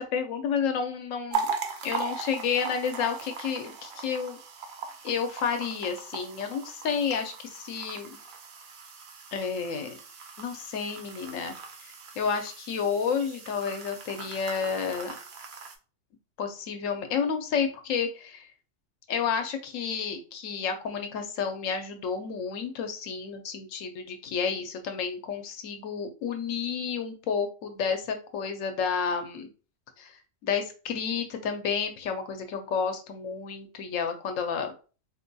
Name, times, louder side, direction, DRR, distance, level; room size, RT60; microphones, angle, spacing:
voice 1, 0.0-1.5 1.8-4.4 5.0-8.1 9.3-10.0 10.4-11.5 11.8-15.2 16.4-18.5 19.1-29.5 30.0-34.7, left 6 dB, 80° left, 6 dB, 1.0 m, -31 dB
sound 1, 1.3-15.7, right 5 dB, 55° right, 0.6 m, -39 dB
4.1 x 2.2 x 2.6 m, 0.35 s
omnidirectional pair, 1.3 m